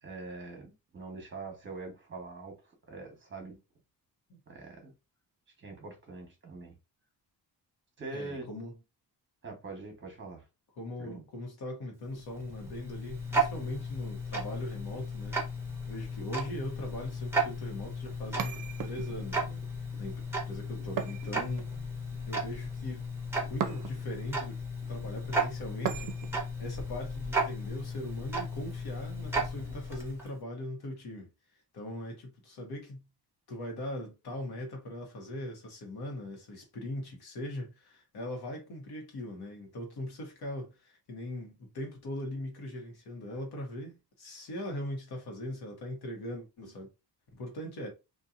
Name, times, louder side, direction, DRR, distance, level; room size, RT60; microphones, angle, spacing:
voice 1, 0.0-3.6 4.5-4.9 5.6-6.7 8.0-8.5 9.4-10.4 11.0-11.2, right 3 dB, 30° right, 1.1 m, -43 dB
voice 2, 8.1-8.7 10.8-15.4 15.9-19.7 20.0-21.7 22.3-23.1 23.5-24.6 24.9-26.1 26.6-31.3 31.7-33.0 33.5-46.9 47.3-47.9, left 1 dB, 65° left, 1.2 m, -40 dB
Tick-tock, 12.0-30.3, right 1 dB, 5° right, 0.8 m, -35 dB
sound 1, 18.4-19.3 21.0-21.9 23.6-24.2 25.8-26.5, right 8 dB, 55° right, 0.5 m, -37 dB
2.8 x 2.6 x 2.4 m
wide cardioid pair, 145°, 40 cm